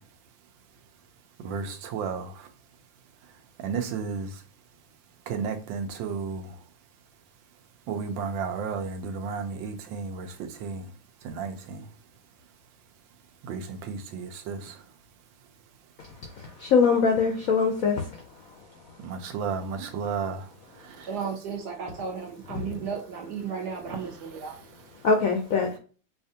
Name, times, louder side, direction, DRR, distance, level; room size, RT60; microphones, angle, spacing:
voice 1, 1.4-2.3 3.6-4.3 5.3-6.4 7.9-10.3 10.6-10.8 11.2-11.8 13.5-13.6 13.9-14.6 19.0-20.4, right 5 dB, 80° right, 1.4 m, -32 dB
voice 2, 16.6-18.0 25.0-25.7, left 5 dB, 75° left, 0.8 m, -22 dB
voice 3, 21.0-24.6, right 6 dB, 65° right, 1.2 m, -34 dB
4.8 x 2.4 x 2.7 m
omnidirectional pair, 2.1 m